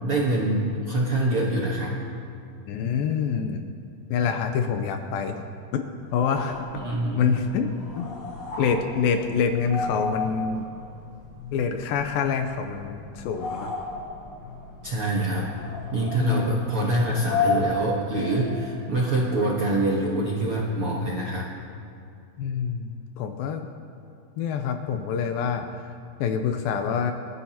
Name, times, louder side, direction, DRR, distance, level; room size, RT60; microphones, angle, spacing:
voice 1, 0.0-1.9 6.7-7.3 14.8-15.6 15.9-21.5, right 1 dB, 60° right, -4 dB, 1.4 m, -25 dB
voice 2, 2.7-3.6 4.1-5.4 5.7-5.8 6.1-6.6 7.2-8.1 8.6-10.7 11.5-13.7 16.2-16.6 22.4-23.7 24.4-25.7 26.2-27.1, left 6 dB, 80° left, 6 dB, 2.3 m, -26 dB
sound 1, 6.1-18.7, left 3 dB, 55° left, 3.3 m, -33 dB
28.5 x 12.0 x 2.9 m, 2.4 s
omnidirectional pair, 4.5 m